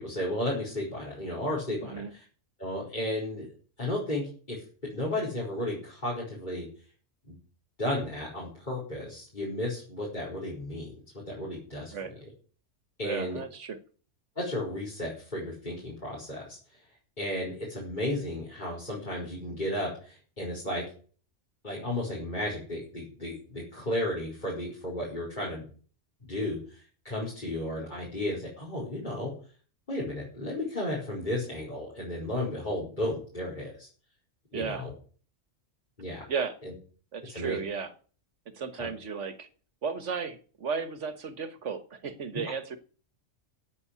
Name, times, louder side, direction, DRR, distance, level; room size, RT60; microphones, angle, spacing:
voice 1, 0.0-2.2 2.6-3.5 3.8-4.6 4.9-6.7 7.3-7.4 7.8-11.9 12.2-12.3 13.0-13.4 14.3-16.6 17.2-20.8 21.6-25.6 26.3-29.3 29.9-33.9 34.5-34.9 36.0-36.3 36.6-36.7 37.3-37.6 38.8-38.9, left 1 dB, 40° left, -5 dB, 5.0 m, -33 dB
voice 2, 1.8-2.1 11.9-12.2 13.0-13.8 34.5-34.9 36.3-36.6 37.1-37.9 38.5-39.5 39.8-42.8, right 6 dB, 75° right, 11 dB, 1.6 m, -34 dB
9.6 x 8.4 x 9.6 m, 0.41 s
omnidirectional pair, 1.2 m